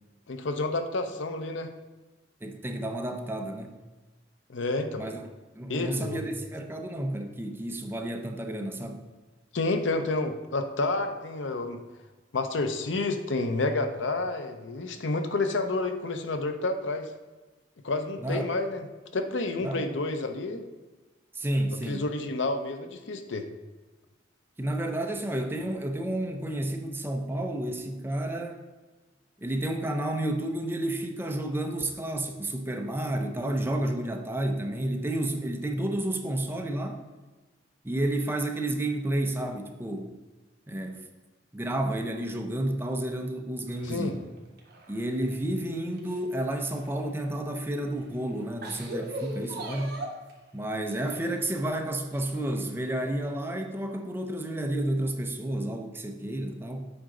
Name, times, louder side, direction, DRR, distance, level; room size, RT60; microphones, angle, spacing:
voice 1, 0.3-1.7 4.5-5.1 5.7-6.2 9.5-11.8 12.3-17.1 17.8-18.9 19.1-20.6 21.9-23.5 43.8-44.1, left 2 dB, 80° left, 7 dB, 0.7 m, -29 dB
voice 2, 2.4-3.7 5.0-5.2 5.6-9.1 18.2-18.4 19.6-19.9 21.3-22.0 24.6-28.6 29.4-37.0 37.8-40.1 40.7-41.1 41.5-44.2 44.9-50.0 50.5-56.9, right 1 dB, 10° right, 4 dB, 0.6 m, -31 dB
sound 1, 43.7-45.5 45.9-47.3 47.9-48.0 48.4-50.3 50.9-51.6 52.1-52.9 53.2-53.3 54.5-54.6, right 1 dB, 55° right, 1.5 m, -40 dB
7.9 x 5.1 x 3.8 m, 1.2 s
head